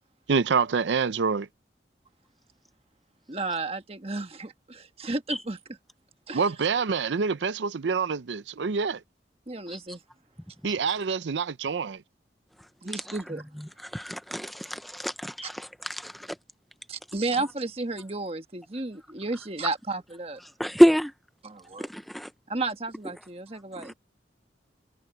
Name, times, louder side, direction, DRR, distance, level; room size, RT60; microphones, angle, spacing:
voice 1, 0.3-1.5 6.3-9.0 10.6-12.0, right 5 dB, 90° right, 0.5 m, -26 dB
voice 2, 3.3-5.6 6.3-6.5 9.5-10.0 12.8-13.4 16.9-20.4 21.4-21.9 22.5-23.9, right 3 dB, 35° right, 1.4 m, -33 dB
voice 3, 13.8-16.3 20.6-21.1 21.8-22.3 23.8-23.9, equal, ahead, 0.6 m, -25 dB
head